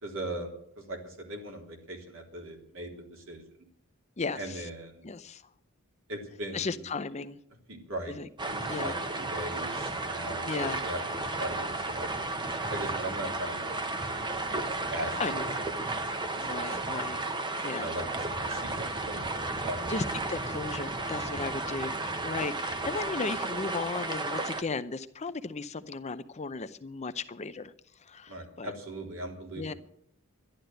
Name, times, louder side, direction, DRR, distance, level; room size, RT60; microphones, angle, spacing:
voice 1, 0.0-3.4 4.3-5.0 6.1-6.9 7.7-13.8 14.9-15.4 15.9-16.8 17.7-19.9 28.3-29.8, right 1 dB, 65° right, 1 dB, 3.6 m, -39 dB
voice 2, 4.2-4.7 5.0-5.4 6.5-7.4 8.1-8.3 8.7-8.9 10.4-10.8 15.2-15.5 16.3-17.2 17.6-17.9 19.9-27.7 28.0-28.7 29.6-29.7, left 4 dB, 30° left, 12 dB, 0.6 m, -35 dB
sound 1, 8.4-24.6, right 2 dB, 20° right, 1.0 m, -33 dB
12.0 x 11.5 x 7.9 m, 0.70 s
head